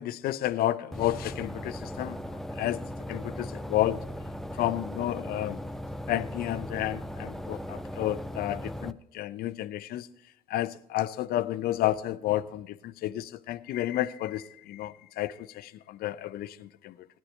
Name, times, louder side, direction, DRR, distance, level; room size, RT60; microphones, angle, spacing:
voice 1, 0.0-2.2 2.5-2.8 3.1-4.0 4.5-5.6 6.1-10.1 10.5-17.1, left 14 dB, 60° left, 0.6 m, -31 dB
sound 1, 0.9-8.9, equal, ahead, 0.5 m, -38 dB
16.5 x 10.0 x 3.2 m
hypercardioid pair, 60°, 18 cm